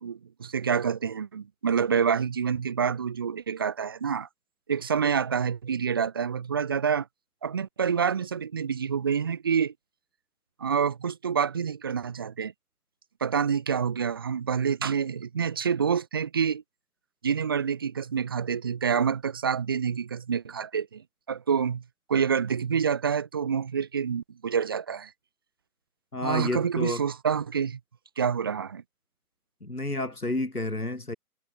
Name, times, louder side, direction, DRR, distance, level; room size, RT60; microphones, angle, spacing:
voice 1, 0.0-4.3 4.7-7.1 7.4-9.7 10.6-12.5 13.2-16.6 17.2-21.8 22.1-25.1 26.2-27.8 28.2-28.8, right 7 dB, 15° right, 0.8 m, -27 dB
voice 2, 26.1-27.0 29.6-31.1, left 2 dB, 80° left, 5.3 m, -30 dB
figure-of-eight pair, 145°, 44 cm